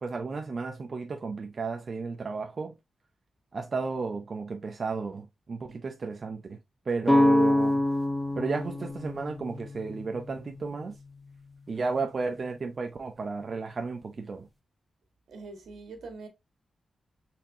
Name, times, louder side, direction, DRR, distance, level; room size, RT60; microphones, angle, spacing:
voice 1, 0.0-2.7 3.5-6.6 6.9-7.8 8.4-10.9 11.7-14.5, right 4 dB, 45° right, 0.5 m, -33 dB
sound 1, 7.1-10.9, left 1 dB, 10° left, 1.4 m, -26 dB
voice 2, 15.3-16.3, right 3 dB, 80° right, 1.5 m, -43 dB
4.2 x 3.5 x 2.7 m
wide cardioid pair, 120°, 0 cm